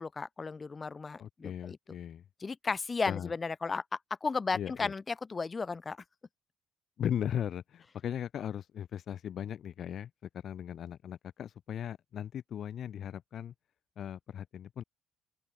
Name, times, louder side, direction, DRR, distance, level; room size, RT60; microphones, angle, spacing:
voice 1, 0.0-1.8 2.4-6.0, left 4 dB, 30° left, 1.4 m, -34 dB
voice 2, 1.2-2.2 3.1-3.3 4.5-4.9 7.0-13.5 14.0-14.8, left 9 dB, 60° left, 0.7 m, -38 dB
open air
supercardioid pair, 65°, 0 cm